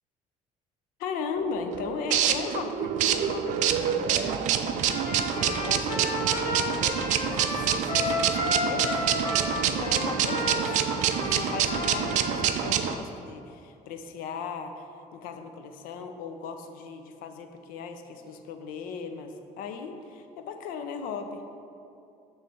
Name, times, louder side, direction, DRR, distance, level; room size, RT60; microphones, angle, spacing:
voice 1, 1.0-7.0 7.4-10.8 11.2-14.8 15.1-21.4, left 5 dB, 80° left, 7 dB, 0.6 m, -38 dB
sound 1, 1.4-12.9, right 9 dB, 60° right, 0.4 m, -27 dB
Trumpet, 4.8-12.6, left 2 dB, 45° left, 1.0 m, -32 dB
6.9 x 3.3 x 6.1 m, 2.6 s
cardioid pair, 165°, 14 cm